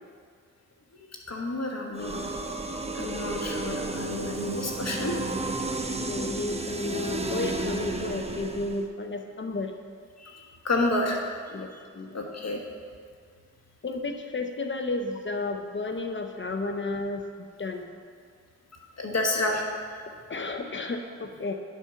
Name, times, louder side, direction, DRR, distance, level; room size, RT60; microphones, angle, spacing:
voice 1, 1.3-2.4 2.9-5.2 10.2-11.2 11.4-11.8 12.1-12.6 19.0-19.7, left 2 dB, 60° left, 1 dB, 1.3 m, -30 dB
sound 1, 1.9-8.9, right 2 dB, 20° right, 0.7 m, -32 dB
voice 2, 6.0-9.7 11.5-12.1 13.8-17.9 20.3-21.5, left 2 dB, 40° left, 5 dB, 0.7 m, -32 dB
10.5 x 4.5 x 5.7 m, 2.1 s
cardioid pair, 55°, 29 cm